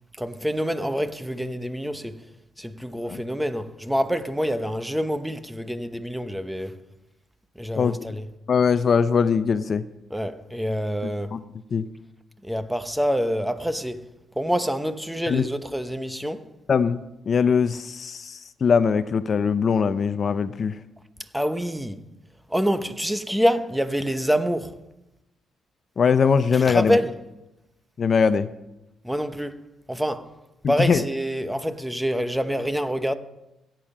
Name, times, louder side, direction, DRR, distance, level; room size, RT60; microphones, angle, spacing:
voice 1, 0.1-2.3 2.6-6.7 7.5-8.3 10.1-11.4 12.4-14.0 14.4-16.5 21.3-22.0 22.5-24.8 26.5-27.2 29.0-30.3 30.7-33.1, equal, 5° right, 0.9 m, -26 dB
voice 2, 8.5-9.9 11.3-11.4 11.7-11.9 15.3-15.5 16.7-20.8 26.0-27.0 28.0-28.5 30.8-31.0, left 6 dB, 45° left, 0.5 m, -21 dB
16.5 x 9.1 x 5.5 m
cardioid pair, 90°, 0 cm